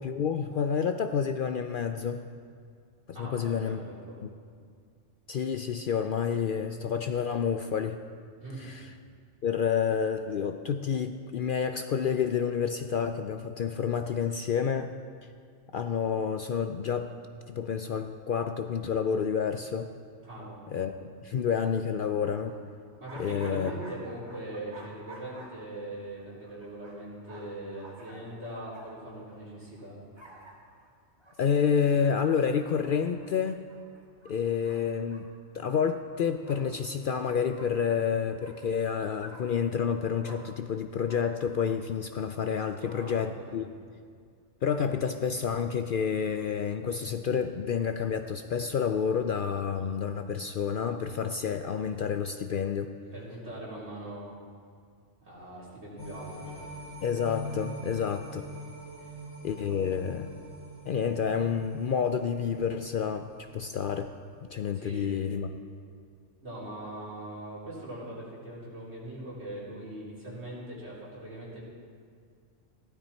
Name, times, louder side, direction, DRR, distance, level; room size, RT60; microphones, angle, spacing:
voice 1, 0.0-2.2 3.2-3.8 4.2-4.3 5.3-8.0 8.6-8.9 9.4-14.9 15.2-15.3 15.7-17.1 17.5-19.9 20.7-22.6 23.2-23.7 31.4-33.6 34.2-35.3 35.5-43.7 44.6-52.9 57.0-58.4 59.4-60.3 60.9-64.1 64.5-65.5, left 7 dB, 60° left, 7 dB, 0.5 m, -29 dB
voice 2, 3.1-4.2 8.4-8.8 20.2-20.6 23.0-30.0 42.8-43.5 53.1-54.3 55.2-56.6 59.0-59.1 59.7-59.8 64.7-65.3 66.4-71.6, right 1 dB, 60° right, -8 dB, 4.2 m, -41 dB
sound 1, 22.2-29.9 30.2-30.9 31.2-31.6 32.0-33.3 33.7-35.6 35.9-36.0 36.3-36.9 37.5-37.9 38.4-38.7 39.2-39.7 40.2-40.7 41.1-41.8, right 2 dB, 20° right, 1.5 m, -51 dB
sound 2, 56.0-64.4 64.8-64.9, equal, 80° left, 3.1 m, -44 dB
15.0 x 12.5 x 4.4 m, 2.1 s
omnidirectional pair, 1.3 m